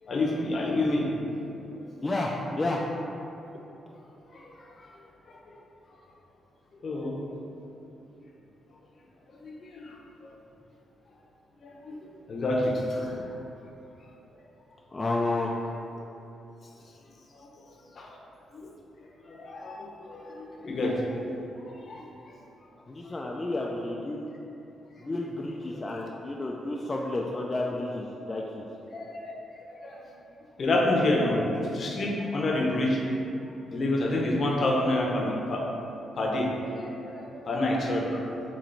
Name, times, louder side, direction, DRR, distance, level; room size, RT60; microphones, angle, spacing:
voice 1, 0.0-1.1 1.7-1.9 4.3-4.9 5.3-5.6 6.8-7.2 9.4-10.0 11.6-12.0 12.3-13.3 17.3-17.5 17.9-18.2 18.6-18.7 19.3-21.2 21.9-22.0 25.7-25.9 28.9-29.4 29.8-30.0 30.6-33.0 33.7-35.6 36.1-36.5 36.8-38.3, left 1 dB, 45° left, -1 dB, 0.7 m, -28 dB
voice 2, 2.0-2.8 14.9-15.5 22.9-24.3 25.0-28.7, left 2 dB, 25° left, -2 dB, 0.3 m, -31 dB
4.4 x 3.0 x 3.9 m, 3.0 s
cardioid pair, 115°, 0 cm